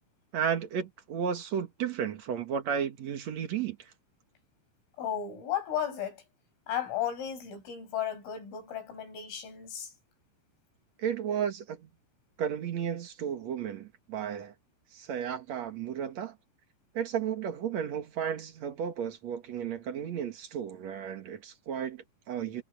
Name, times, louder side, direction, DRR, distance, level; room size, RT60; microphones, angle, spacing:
voice 1, 0.3-3.9 11.0-11.9 12.4-14.5 14.9-16.4 16.9-22.6, right 8 dB, 65° right, 1.7 m, -33 dB
voice 2, 5.0-6.2 6.7-9.9, left 9 dB, 80° left, 8.6 m, -34 dB
omnidirectional pair, 5.8 m